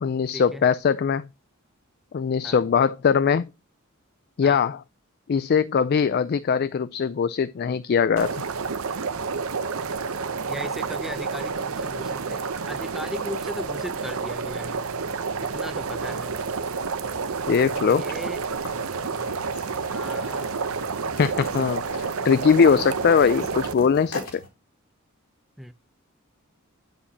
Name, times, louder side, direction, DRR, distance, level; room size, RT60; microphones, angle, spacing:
voice 1, 0.0-1.3 2.1-3.5 4.4-4.8 5.3-8.4 17.5-18.0 21.2-24.2, left 6 dB, 45° left, 0.3 m, -21 dB
sound 1, 8.2-23.7, right 5 dB, 70° right, 0.8 m, -30 dB
voice 2, 10.4-14.8 15.4-16.3 17.6-18.4 19.9-20.5 25.6-25.7, equal, ahead, 0.6 m, -37 dB
sound 2, 18.6-24.5, left 2 dB, 85° left, 3.1 m, -41 dB
8.4 x 7.3 x 2.8 m
head